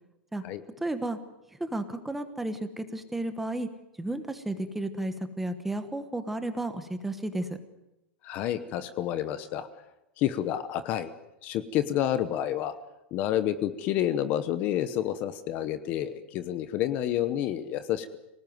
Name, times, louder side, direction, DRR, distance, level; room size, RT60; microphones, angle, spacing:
voice 1, 0.8-1.2 1.5-3.7 4.0-7.6, right 1 dB, 5° right, 9 dB, 1.1 m, -33 dB
voice 2, 8.2-9.7 10.2-11.1 11.4-12.8 13.1-18.2, left 11 dB, 25° left, 13 dB, 0.9 m, -29 dB
25.5 x 19.0 x 9.4 m, 0.90 s
supercardioid pair, 180°, 6 cm